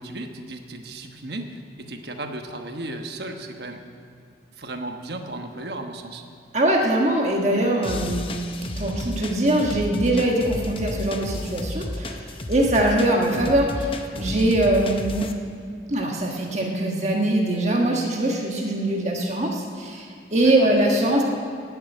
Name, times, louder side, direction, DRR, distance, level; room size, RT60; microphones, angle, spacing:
voice 1, 0.0-3.8 4.6-6.2 20.4-20.7, right 2 dB, 65° right, 4 dB, 1.2 m, -35 dB
voice 2, 6.5-15.3 15.9-21.2, right 1 dB, 40° right, 0 dB, 1.4 m, -22 dB
sound 1, 7.8-15.3, left 1 dB, 30° left, 0.8 m, -33 dB
17.5 x 7.0 x 8.9 m, 2.3 s
head